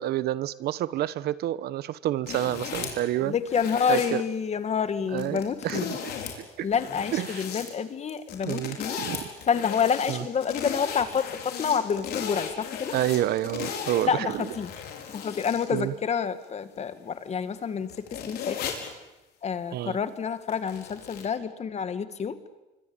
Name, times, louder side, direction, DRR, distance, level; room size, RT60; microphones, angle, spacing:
voice 1, 0.0-3.3 3.9-4.2 5.1-6.0 6.4-6.7 7.1-7.4 8.4-9.3 10.1-10.2 12.9-14.5 15.7-15.9 19.7-20.0, right 13 dB, 70° right, 17 dB, 1.0 m, -29 dB
sound 1, 2.3-3.0 3.5-4.1 5.2-6.4 6.6-7.7 8.1-15.8 16.4-16.5 17.6-17.7 17.9-18.9 20.5-21.3, left 7 dB, 70° left, 5.4 m, -36 dB
voice 2, 3.2-5.9 6.6-9.0 9.5-13.0 14.1-14.7 15.1-18.7 19.4-22.4, left 7 dB, 40° left, 11 dB, 2.1 m, -28 dB
26.5 x 24.5 x 9.0 m, 1.0 s
cardioid pair, 110°, 17 cm